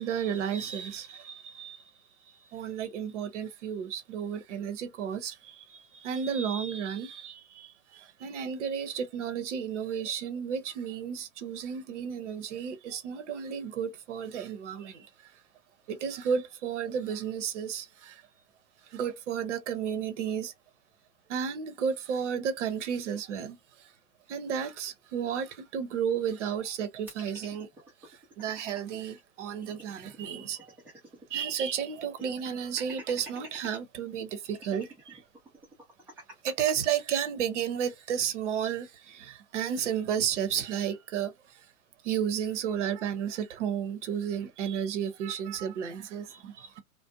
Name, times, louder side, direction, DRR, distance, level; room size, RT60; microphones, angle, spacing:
voice 1, 0.0-1.9 2.2-15.3 15.9-18.2 18.8-20.5 21.3-23.9 24.3-27.7 28.0-30.7 31.3-35.2 36.4-41.7 42.0-46.8, right 8 dB, 50° right, 0.7 m, -33 dB
sound 1, 27.1-28.8 29.2-29.3 29.5-31.3 31.6-31.7 32.2-33.8 34.4-36.7, right 1 dB, 5° right, 0.5 m, -48 dB
2.5 x 2.0 x 2.6 m
figure-of-eight pair, 120°, 45 cm